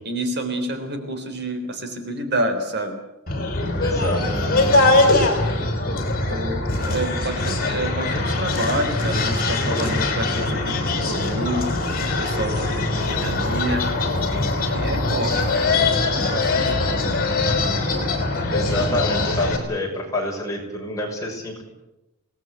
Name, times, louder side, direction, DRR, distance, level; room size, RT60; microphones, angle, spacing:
voice 1, 0.0-3.0 4.0-4.9 6.3-13.9 14.7-17.1 18.9-19.0, right 1 dB, 50° right, 6 dB, 3.7 m, -29 dB
sound 1, 3.3-19.6, left 2 dB, 45° left, 4.8 m, -22 dB
voice 2, 3.8-4.2 18.5-21.6, left 1 dB, 15° left, -1 dB, 6.6 m, -27 dB
25.5 x 19.0 x 8.3 m, 0.97 s
head